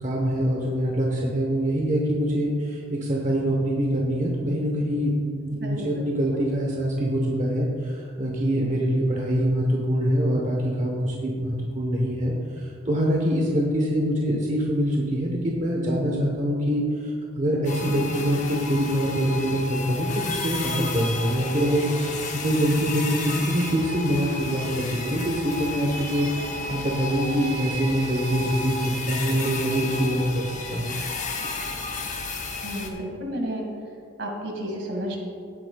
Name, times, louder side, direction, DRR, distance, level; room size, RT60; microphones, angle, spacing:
voice 1, 0.0-12.3 12.8-17.1 17.4-22.1 22.4-26.3 26.7-28.7 29.1-31.0, equal, 40° right, -2 dB, 1.1 m, -24 dB
voice 2, 5.5-6.1 28.4-28.5 32.6-33.6 34.2-35.2, equal, 70° right, 1 dB, 2.0 m, -32 dB
sound 1, 17.6-32.9, left 3 dB, 40° left, 0.9 m, -32 dB
16.5 x 8.7 x 2.3 m, 2.5 s
head